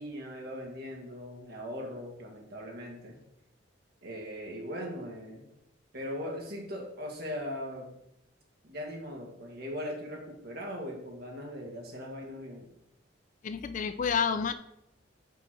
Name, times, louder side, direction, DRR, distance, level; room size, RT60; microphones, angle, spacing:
voice 1, 0.0-3.2 4.0-5.5 5.9-7.9 8.6-12.7, equal, 55° right, -1 dB, 1.7 m, -39 dB
voice 2, 13.4-14.5, left 6 dB, 45° left, 11 dB, 0.4 m, -29 dB
5.5 x 4.1 x 6.0 m, 0.81 s
head